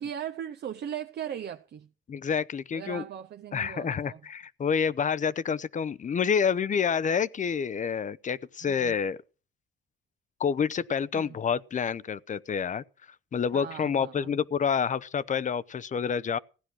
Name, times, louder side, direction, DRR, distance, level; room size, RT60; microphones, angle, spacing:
voice 1, 0.0-1.9 2.7-4.2 8.6-9.0 11.1-11.3 13.5-14.3, right 9 dB, 55° right, 0.7 m, -38 dB
voice 2, 2.1-3.0 3.5-9.2 10.4-12.8 13.3-16.4, left 6 dB, 40° left, 0.7 m, -28 dB
15.5 x 9.9 x 6.2 m
cardioid pair, 90°, 20 cm